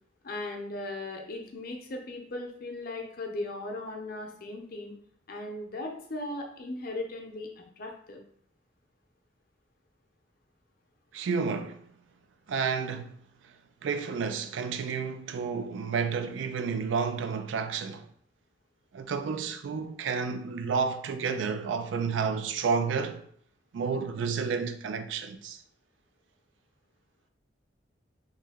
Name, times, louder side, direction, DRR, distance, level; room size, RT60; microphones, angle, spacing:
voice 1, 0.2-4.9 5.3-8.2, left 2 dB, 55° left, 0.7 m, -37 dB
voice 2, 11.1-11.9 12.5-13.2 13.8-18.1 18.9-23.2 23.7-25.6, right 5 dB, 80° right, 0.4 m, -31 dB
3.2 x 2.7 x 3.5 m
head